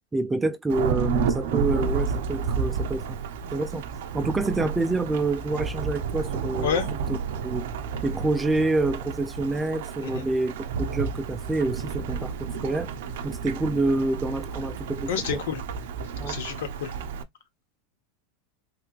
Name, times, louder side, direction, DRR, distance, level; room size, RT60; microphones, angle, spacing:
voice 1, 0.1-3.2 3.5-3.8 4.1-6.8 7.1-7.2 7.4-7.7 8.0-12.9 13.2-15.4 16.2-16.4, right 2 dB, 10° right, 0.4 m, -27 dB
Thunderstorm / Rain, 0.7-17.2, right 6 dB, 75° right, 0.5 m, -31 dB
voice 2, 15.1-15.6 16.3-16.9, left 7 dB, 85° left, 1.1 m, -29 dB
3.2 x 3.0 x 2.4 m
supercardioid pair, 155°, 0 cm